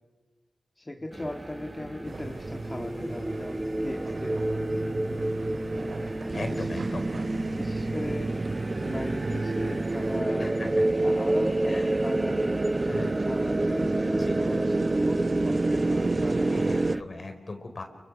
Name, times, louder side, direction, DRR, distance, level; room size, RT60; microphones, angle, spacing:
voice 1, 0.8-5.0 6.3-6.8 7.1-7.2 7.5-8.4 8.8-10.6 11.0-16.7, left 1 dB, 25° left, 3 dB, 2.0 m, -39 dB
sound 1, 1.1-17.0, right 1 dB, 25° right, 1.2 m, -29 dB
sound 2, 2.0-10.2, right 3 dB, 65° right, 4.2 m, -42 dB
voice 2, 6.3-7.1 10.4-10.8 11.6-12.0 12.9-13.1 14.1-14.4 16.5-17.8, left 2 dB, 50° left, 6 dB, 4.7 m, -38 dB
sound 3, 6.3-17.0, right 3 dB, 45° right, 0.9 m, -30 dB
28.5 x 25.5 x 6.4 m, 1.3 s
cardioid pair, 55°, 0 cm